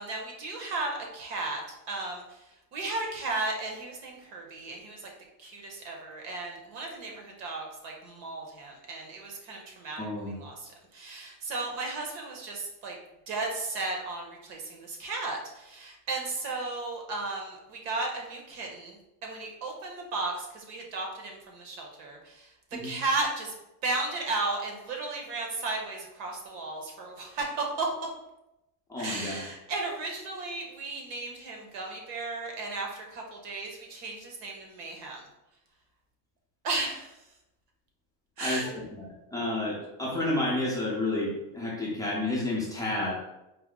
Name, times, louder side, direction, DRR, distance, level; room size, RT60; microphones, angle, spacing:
voice 1, 0.0-1.6 1.9-2.4 2.7-5.1 5.4-13.0 13.3-22.5 22.8-23.5 23.8-27.9 29.0-35.3 36.6-37.1 38.4-38.7, right 3 dB, 85° right, 1 dB, 1.2 m, -35 dB
voice 2, 10.0-10.3 22.7-22.9 28.9-29.4 38.4-43.1, left 2 dB, 10° left, -5 dB, 0.5 m, -31 dB
4.3 x 2.0 x 3.7 m, 0.92 s
cardioid pair, 145°, 48 cm